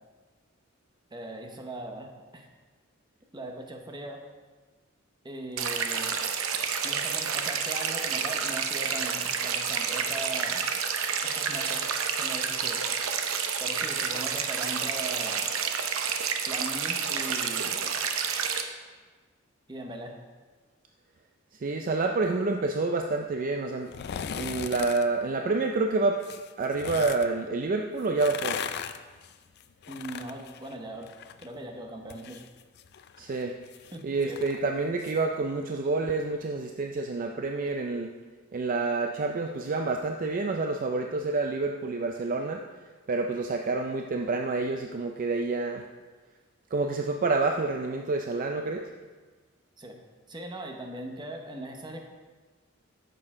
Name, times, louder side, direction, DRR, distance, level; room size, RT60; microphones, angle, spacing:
voice 1, 1.1-2.5 3.3-4.2 5.2-6.2 6.8-10.6 11.2-11.9 12.2-12.8 13.6-15.5 16.5-17.9 19.7-20.2 29.9-31.1 31.4-32.4 33.9-34.4 49.8-50.0 50.3-52.0, right 1 dB, 20° right, 2 dB, 0.9 m, -39 dB
sound 1, 5.6-18.6, right 6 dB, 80° right, 0.7 m, -29 dB
voice 2, 21.5-23.9 24.4-26.2 26.6-28.6 33.2-33.6 34.0-38.1 38.5-42.6 43.1-45.8 46.7-48.9, right 3 dB, 40° right, 3 dB, 0.4 m, -28 dB
sound 2, 23.8-25.0 26.2-27.3 28.0-31.5 31.8-35.2 35.5-35.6, left 8 dB, 55° left, 0.4 m, -38 dB
9.7 x 6.8 x 3.7 m, 1.4 s
head